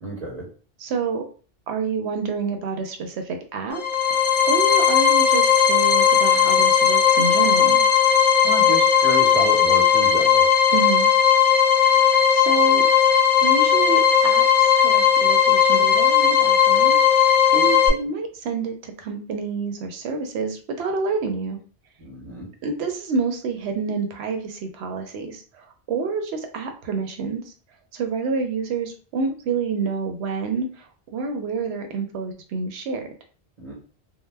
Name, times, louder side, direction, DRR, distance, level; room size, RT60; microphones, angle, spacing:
voice 1, 0.0-0.5 8.4-10.5 22.0-22.5 33.6-33.7, equal, 40° right, -4 dB, 0.9 m, -30 dB
voice 2, 0.8-1.2 1.7-7.8 10.7-11.1 11.9-12.9 13.4-14.4 14.8-21.6 22.6-27.5 27.9-30.9 31.1-33.0, right 4 dB, 85° right, 5 dB, 0.8 m, -28 dB
sound 1, 3.7-17.9, left 8 dB, 65° left, 0.7 m, -17 dB
2.1 x 2.0 x 3.2 m, 0.39 s
omnidirectional pair, 1.1 m